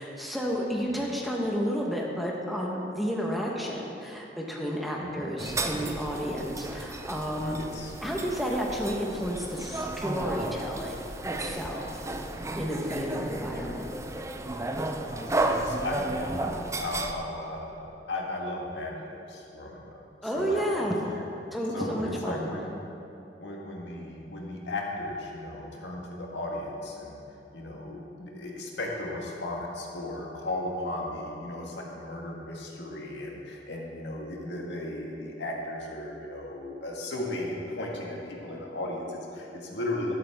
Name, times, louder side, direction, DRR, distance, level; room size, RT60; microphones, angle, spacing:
voice 1, 0.0-7.6 8.0-11.8 12.6-13.9 20.2-20.9 21.5-22.5, equal, ahead, -2 dB, 1.1 m, -31 dB
sound 1, 5.4-17.1, right 2 dB, 15° right, 0.5 m, -33 dB
voice 2, 7.5-7.9 13.1-13.3 15.1-20.7 21.7-22.7 23.4-27.2 27.5-40.1, left 1 dB, 75° left, -1 dB, 1.7 m, -36 dB
12.0 x 11.5 x 3.6 m, 2.8 s
head